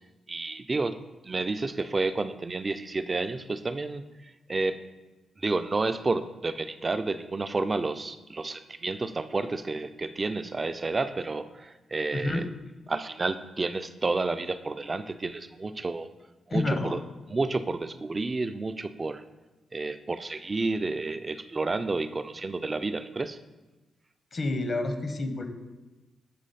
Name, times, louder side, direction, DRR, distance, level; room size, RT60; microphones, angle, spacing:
voice 1, 0.3-4.1 4.5-4.8 5.4-12.4 12.9-16.1 16.5-17.0 17.3-19.2 19.7-23.4, right 3 dB, 35° right, 11 dB, 0.4 m, -30 dB
voice 2, 12.1-12.5 16.5-16.9 24.3-25.4, left 2 dB, 50° left, 6 dB, 0.9 m, -29 dB
8.4 x 3.0 x 4.2 m, 1.1 s
cardioid pair, 60°, 0 cm